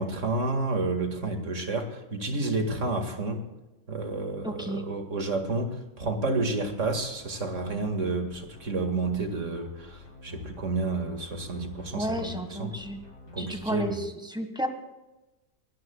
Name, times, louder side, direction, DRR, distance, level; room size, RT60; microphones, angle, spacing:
voice 1, 0.0-3.4 3.9-12.7 13.3-14.0, right 3 dB, 50° right, 5 dB, 2.3 m, -30 dB
voice 2, 4.4-4.8 11.9-13.0 13.4-14.7, equal, 5° right, 6 dB, 1.4 m, -32 dB
sound 1, 6.5-13.9, left 3 dB, 85° left, 5.0 m, -48 dB
23.5 x 17.0 x 2.3 m, 1.1 s
omnidirectional pair, 1.7 m